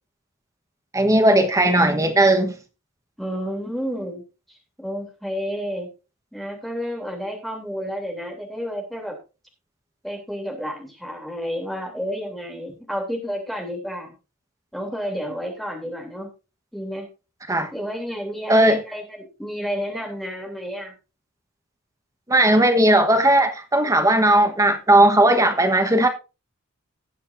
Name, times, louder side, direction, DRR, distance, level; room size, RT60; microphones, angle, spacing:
voice 1, 0.9-2.6 17.5-17.7 18.5-18.8 22.3-26.1, right 1 dB, 15° right, 1.2 m, -17 dB
voice 2, 3.2-4.2 4.8-5.9 6.3-9.1 10.0-14.1 14.7-16.3 16.7-17.1 17.7-20.9 22.6-22.7, equal, ahead, 3.1 m, -30 dB
19.0 x 7.5 x 2.6 m
head